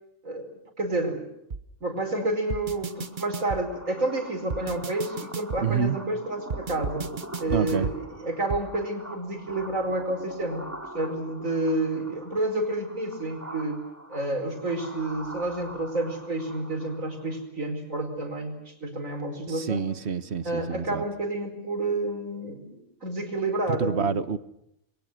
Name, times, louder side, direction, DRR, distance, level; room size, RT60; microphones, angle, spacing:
voice 1, 0.8-1.2 1.8-7.1 7.4-10.7 10.9-13.8 14.1-19.8 20.5-24.1, right 2 dB, 80° right, 5 dB, 5.2 m, -29 dB
sound 1, 1.5-1.6 2.5-3.6 4.5-5.6 6.5-8.0 8.5-8.6, right 5 dB, 40° right, 1.2 m, -33 dB
sound 2, 2.1-17.4, equal, 10° right, 3.8 m, -44 dB
voice 2, 5.6-6.0 7.5-7.9 19.5-21.0 23.7-24.4, right 6 dB, 55° right, 13 dB, 1.4 m, -27 dB
29.5 x 23.0 x 6.4 m, 0.78 s
omnidirectional pair, 1.4 m